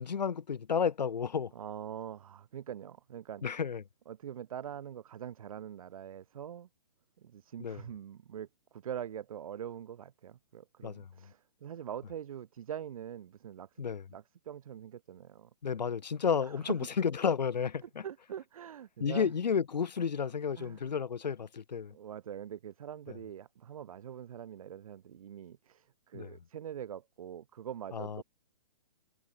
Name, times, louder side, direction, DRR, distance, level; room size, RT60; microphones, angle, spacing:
voice 1, 0.0-1.5 3.4-3.8 7.6-7.8 10.8-11.1 13.8-14.0 15.6-18.0 19.0-21.9 23.1-23.2 26.1-26.3 27.9-28.2, left 6 dB, 85° left, 1.1 m, -32 dB
voice 2, 1.5-3.4 4.1-6.7 7.2-13.8 14.1-15.5 16.4-16.6 17.8-19.3 20.6-20.9 21.9-28.2, right 9 dB, 55° right, 2.9 m, -44 dB
hypercardioid pair, 150°, 21 cm